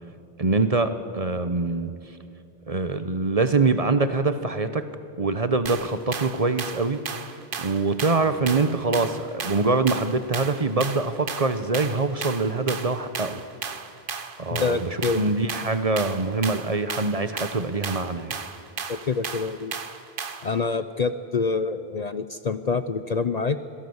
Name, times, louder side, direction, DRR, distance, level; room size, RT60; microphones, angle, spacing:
voice 1, 0.4-1.9 2.7-4.8 5.2-7.0 7.6-13.4 14.4-18.4, right 3 dB, 35° right, 10 dB, 1.0 m, -24 dB
sound 1, 5.7-20.6, right 5 dB, 55° right, 1.3 m, -35 dB
voice 2, 14.5-15.2 18.9-19.7 20.4-23.6, left 4 dB, 45° left, 12 dB, 0.6 m, -26 dB
25.5 x 17.5 x 8.0 m, 2.5 s
omnidirectional pair, 1.1 m